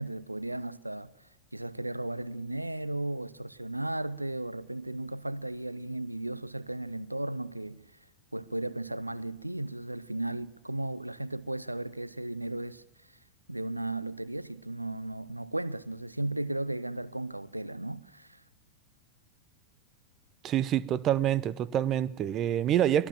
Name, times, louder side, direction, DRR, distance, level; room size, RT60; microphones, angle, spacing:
voice 1, 0.0-7.9 8.3-13.2 13.5-18.4, right 1 dB, 85° right, 0.7 m, -35 dB
voice 2, 20.4-23.1, right 11 dB, 30° right, 0.8 m, -27 dB
23.5 x 17.0 x 7.5 m
figure-of-eight pair, 90°, 0 cm